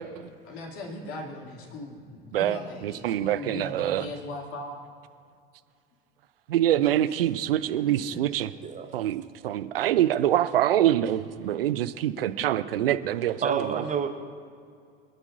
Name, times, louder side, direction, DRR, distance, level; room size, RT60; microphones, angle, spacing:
voice 1, 0.4-4.8 6.8-7.3 8.3-8.5 11.4-11.5, left 2 dB, 45° left, 0 dB, 2.7 m, -39 dB
voice 2, 2.8-4.0 6.5-8.5 8.9-13.8, right 12 dB, 70° right, 13 dB, 0.6 m, -25 dB
voice 3, 13.4-14.1, right 6 dB, 25° right, 6 dB, 1.1 m, -28 dB
26.5 x 9.8 x 2.7 m, 2.3 s
figure-of-eight pair, 80°, 29 cm